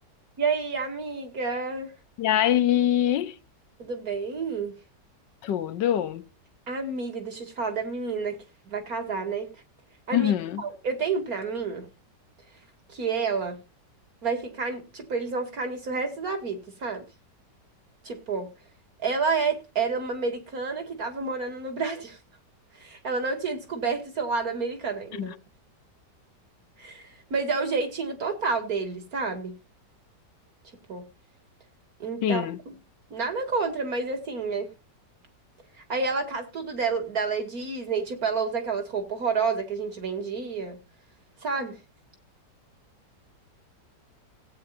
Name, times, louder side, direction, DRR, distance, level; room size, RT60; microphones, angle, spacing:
voice 1, 0.4-1.9 3.8-4.8 6.7-9.5 10.1-10.3 10.6-11.9 12.9-13.6 14.2-17.0 18.0-18.5 19.0-22.2 22.7-25.3 26.8-29.6 30.9-31.1 32.0-32.8 33.1-34.7 35.9-40.8 41.4-41.8, right 4 dB, 55° right, 2.7 m, -29 dB
voice 2, 2.2-3.4 5.4-6.2 10.1-10.6 25.2-25.3 32.2-32.6, left 11 dB, 85° left, 1.5 m, -24 dB
17.5 x 8.9 x 2.7 m
omnidirectional pair, 1.9 m